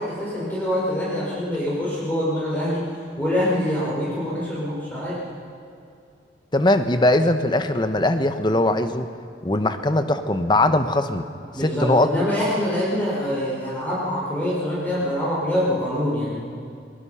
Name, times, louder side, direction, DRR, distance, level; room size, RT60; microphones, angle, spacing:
voice 1, 0.0-2.8 3.2-5.2 11.5-16.4, left 1 dB, 10° left, -7 dB, 5.0 m, -25 dB
voice 2, 6.5-9.1 9.4-11.2 11.6-12.1, left 1 dB, 25° left, 9 dB, 1.0 m, -20 dB
22.5 x 20.5 x 5.7 m, 2.5 s
head